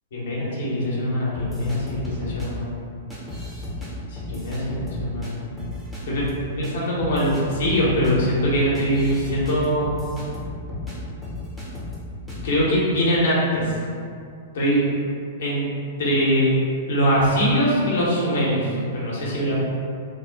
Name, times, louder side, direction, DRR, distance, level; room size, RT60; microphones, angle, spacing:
voice 1, 0.1-2.7 4.1-5.3 6.1-6.3 6.5-9.9 12.4-13.6 14.5-14.8 15.4-15.6 16.0-16.5 16.9-19.5, equal, 70° left, -6 dB, 1.0 m, -22 dB
sound 1, 1.3-2.5 3.1-3.9 4.2-5.3 5.6-6.3 6.6-6.7 7.0-10.9 11.2-12.0 12.3-12.5, left 2 dB, ahead, 0.9 m, -33 dB
2.7 x 2.0 x 3.9 m, 2.3 s
hypercardioid pair, 115°, 0 cm